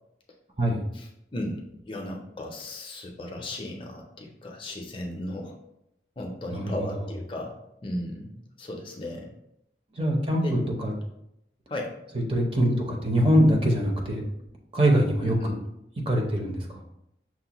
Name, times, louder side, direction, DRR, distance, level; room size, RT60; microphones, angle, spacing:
voice 1, 1.3-5.5 6.2-9.3 10.4-10.5 11.7-12.0 15.2-15.6, left 1 dB, 30° left, 1 dB, 0.5 m, -35 dB
voice 2, 6.5-6.9 9.9-10.9 12.3-14.3 14.7-15.6 16.1-16.8, equal, 30° right, 0 dB, 0.6 m, -23 dB
5.9 x 2.1 x 2.9 m, 0.80 s
head